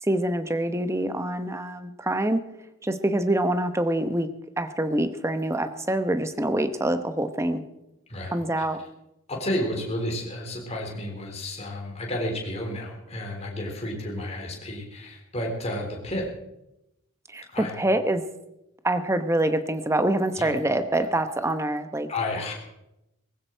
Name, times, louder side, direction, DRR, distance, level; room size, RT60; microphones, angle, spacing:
voice 1, 0.0-2.4 2.8-4.3 4.6-7.6 8.3-8.8 17.3-18.2 18.8-22.1, right 1 dB, 15° right, 9 dB, 0.9 m, -25 dB
voice 2, 8.1-8.7 9.3-16.2 17.5-17.7 20.4-20.5 22.1-22.5, left 1 dB, 30° left, 0 dB, 3.7 m, -31 dB
19.0 x 15.5 x 4.5 m, 0.87 s
head